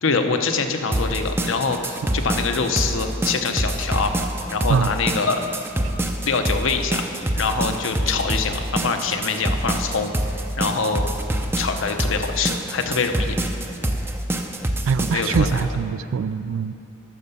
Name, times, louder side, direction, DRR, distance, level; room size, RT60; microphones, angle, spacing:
voice 1, 0.0-4.1 4.5-5.4 6.2-7.1 7.3-10.1 10.6-11.1 11.6-13.4 15.1-15.7, left 4 dB, 65° left, 6 dB, 0.8 m, -24 dB
sound 1, 0.9-15.6, right 1 dB, 10° right, 0.5 m, -25 dB
voice 2, 14.9-16.7, right 6 dB, 75° right, 15 dB, 0.3 m, -23 dB
12.5 x 6.7 x 6.8 m, 2.8 s
head